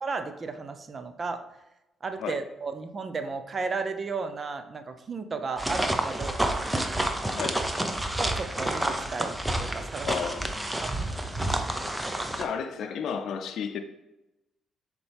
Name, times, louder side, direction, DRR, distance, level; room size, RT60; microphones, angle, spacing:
voice 1, 0.0-1.4 2.0-6.6 8.2-10.1 10.8-11.1, right 4 dB, 40° right, 8 dB, 0.7 m, -34 dB
sound 1, 5.6-12.4, right 1 dB, 10° right, 0.8 m, -29 dB
voice 2, 10.0-10.5 12.3-13.8, left 6 dB, 70° left, 5 dB, 0.5 m, -32 dB
6.8 x 4.4 x 3.5 m, 0.96 s
cardioid pair, 75°, 0 cm